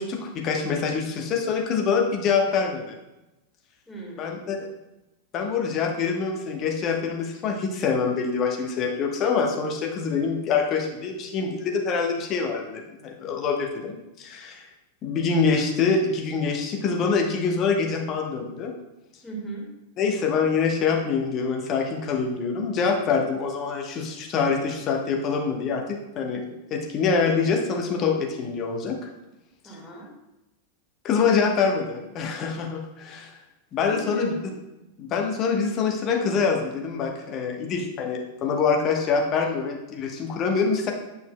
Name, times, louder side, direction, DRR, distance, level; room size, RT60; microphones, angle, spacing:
voice 1, 0.0-3.0 4.2-4.6 5.3-14.6 15.0-18.7 20.0-29.1 29.6-29.8 31.0-33.3 33.7-34.3 35.0-40.9, left 5 dB, 35° left, 2 dB, 1.0 m, -25 dB
voice 2, 3.9-4.5 19.2-19.7 29.6-30.1 33.8-34.5, right 2 dB, 5° left, -4 dB, 2.0 m, -38 dB
8.9 x 5.5 x 2.2 m, 0.99 s
figure-of-eight pair, 90°, 0 cm